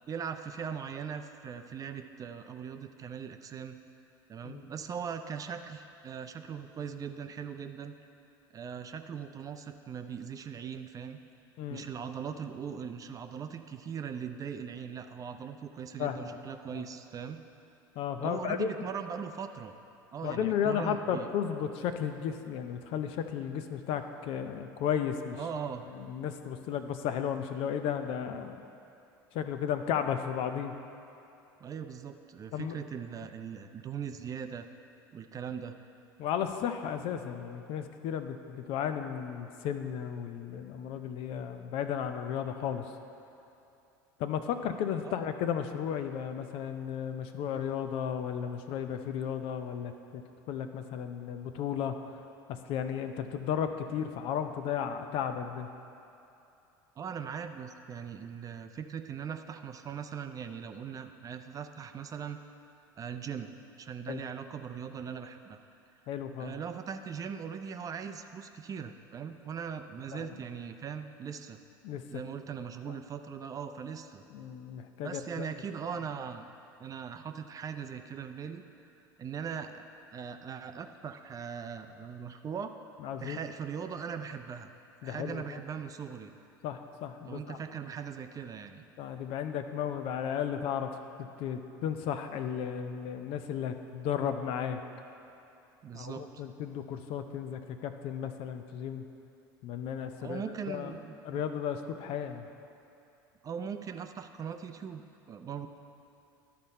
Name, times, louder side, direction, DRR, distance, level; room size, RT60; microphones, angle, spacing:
voice 1, 0.1-3.8 4.3-7.9 8.5-11.2 11.7-17.4 18.2-19.7 20.1-21.3 25.3-25.9 31.6-34.7 35.1-35.8 45.0-45.3 57.0-62.4 63.0-63.5 63.8-65.6 66.4-71.6 72.1-74.2 75.0-76.5 76.8-78.6 79.2-82.7 83.2-84.7 85.0-86.3 87.2-88.9 95.8-96.3 100.2-101.4 102.0-102.2 103.4-105.7, right 7 dB, 30° right, 8 dB, 0.5 m, -40 dB
voice 2, 16.0-16.4 16.7-16.8 18.0-18.8 20.2-25.4 25.9-28.6 29.3-30.7 32.5-32.8 36.2-42.9 44.2-50.2 50.5-52.1 52.5-55.7 64.1-64.2 66.1-66.6 70.1-70.3 71.8-72.2 74.3-75.5 83.0-83.4 85.0-85.6 86.6-87.6 89.0-90.9 91.2-94.8 95.9-99.0 99.6-100.4 100.7-100.9 101.2-102.5, left 8 dB, 55° left, 7 dB, 0.6 m, -34 dB
11.5 x 4.3 x 5.4 m, 2.8 s
hypercardioid pair, 80°, 11 cm